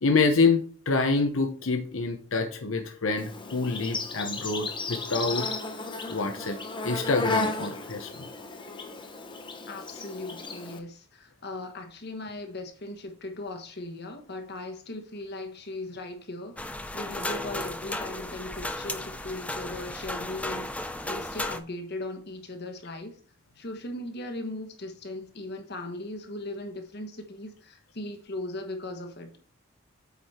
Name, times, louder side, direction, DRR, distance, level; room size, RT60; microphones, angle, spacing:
voice 1, 0.0-5.5 6.1-6.6 6.8-8.1, left 4 dB, 80° left, 0.9 m, -26 dB
Insect, 3.2-10.8, left 3 dB, 25° left, 0.9 m, -34 dB
voice 2, 9.7-23.1 23.6-29.3, left 2 dB, 55° left, 1.3 m, -38 dB
sound 1, 16.6-21.6, left 1 dB, 5° left, 0.5 m, -34 dB
8.3 x 4.8 x 4.3 m
head